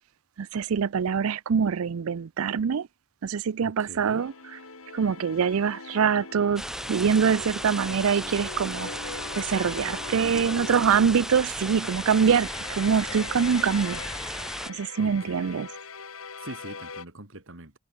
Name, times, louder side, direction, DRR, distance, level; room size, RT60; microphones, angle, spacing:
voice 1, 0.4-2.9 3.2-4.3 4.9-6.6 6.9-8.9 9.4-12.5 12.8-14.0 14.7-15.7, right 6 dB, 80° right, 0.5 m, -24 dB
voice 2, 3.6-4.3 10.1-10.9 15.0-15.7 16.4-17.8, right 2 dB, 60° right, 3.2 m, -42 dB
sound 1, 4.2-17.1, left 4 dB, 75° left, 3.1 m, -41 dB
sound 2, 6.6-14.7, right 1 dB, ahead, 3.1 m, -35 dB
head